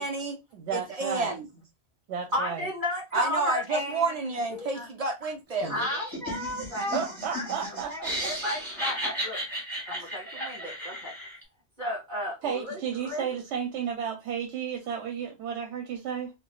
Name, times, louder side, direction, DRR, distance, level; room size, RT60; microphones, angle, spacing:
voice 1, 0.0-0.4 0.7-1.5 3.1-5.7, right 3 dB, 65° right, 0.3 m, -30 dB
voice 2, 0.5-1.4 2.1-2.6 5.6-5.8 6.9-7.9 10.0-10.1 12.4-16.3, right 7 dB, 85° right, 0.9 m, -32 dB
voice 3, 2.3-4.2 4.5-4.9 5.7-9.4 9.9-11.1 11.8-13.3, left 1 dB, 45° right, 2.2 m, -33 dB
Laughter, 5.6-11.4, equal, 20° right, 2.2 m, -35 dB
4.5 x 2.0 x 2.3 m
omnidirectional pair, 1.1 m